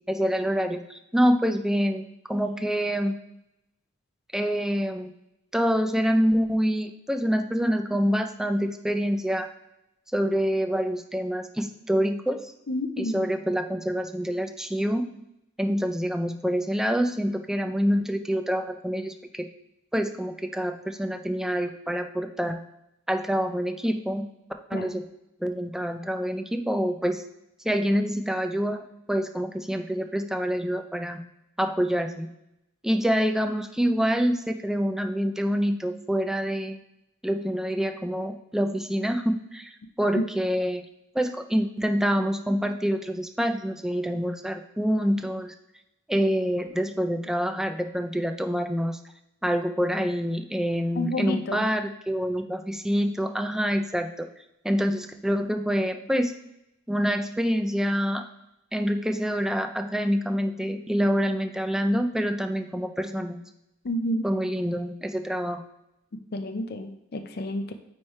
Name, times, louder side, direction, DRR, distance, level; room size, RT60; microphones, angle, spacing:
voice 1, 0.1-3.1 4.3-5.1 5.5-9.5 10.1-12.5 13.0-15.1 15.6-19.5 19.9-22.6 23.1-24.2 24.7-25.0 25.4-27.2 27.6-28.8 29.1-31.2 31.6-32.3 32.8-36.8 37.2-40.8 41.1-45.5 46.1-49.0 49.4-54.3 54.6-56.3 56.9-58.2 58.7-63.4 64.2-65.6, equal, 5° right, 6 dB, 0.4 m, -26 dB
voice 2, 12.7-13.3 24.7-24.9 40.1-40.3 51.0-51.6 63.8-64.3 66.3-67.7, left 1 dB, 50° left, 7 dB, 0.5 m, -29 dB
9.3 x 3.1 x 4.3 m, 0.87 s
head